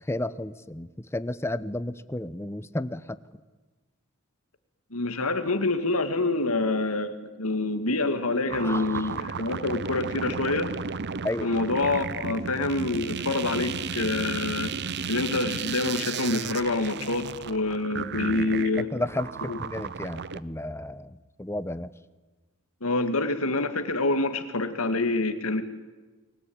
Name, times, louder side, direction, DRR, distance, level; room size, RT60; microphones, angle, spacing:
voice 1, 0.1-3.2 8.6-8.8 11.2-11.5 18.8-21.9, left 1 dB, 10° left, 15 dB, 0.8 m, -32 dB
voice 2, 4.9-10.7 11.4-14.7 15.1-18.9 19.4-19.6 22.8-25.6, left 2 dB, 80° left, 9 dB, 2.1 m, -27 dB
sound 1, 8.5-20.4, right 5 dB, 55° right, 0.8 m, -34 dB
29.5 x 21.0 x 8.8 m, 1.3 s
head